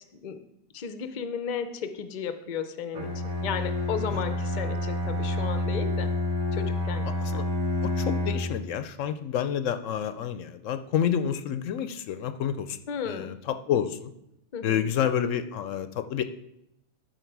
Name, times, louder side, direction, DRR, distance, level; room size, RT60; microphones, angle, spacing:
voice 1, 0.7-6.1 6.5-7.1 7.3-7.4 12.9-13.3 14.5-14.9, left 7 dB, 45° left, 9 dB, 0.6 m, -34 dB
Bowed string instrument, 2.9-8.6, left 2 dB, 65° right, 1.9 m, -28 dB
voice 2, 7.0-7.4 7.8-12.8 13.0-14.1 14.6-16.2, left 9 dB, 75° left, 11 dB, 0.9 m, -29 dB
12.0 x 4.8 x 4.6 m, 0.84 s
omnidirectional pair, 1.4 m